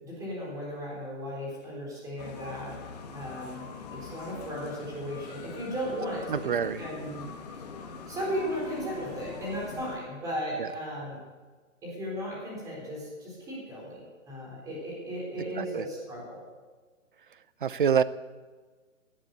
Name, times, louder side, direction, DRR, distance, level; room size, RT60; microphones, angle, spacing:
voice 1, 0.0-2.8 3.1-3.6 3.9-7.2 8.1-11.2 11.8-16.4, equal, 10° right, -4 dB, 3.9 m, -36 dB
sound 1, 2.2-10.0, left 5 dB, 30° left, 1.7 m, -43 dB
voice 2, 6.3-6.8 10.6-10.7 15.6-15.8 17.6-18.0, right 7 dB, 40° right, 16 dB, 0.6 m, -26 dB
17.0 x 8.8 x 8.1 m, 1.4 s
hypercardioid pair, 165°, 40 cm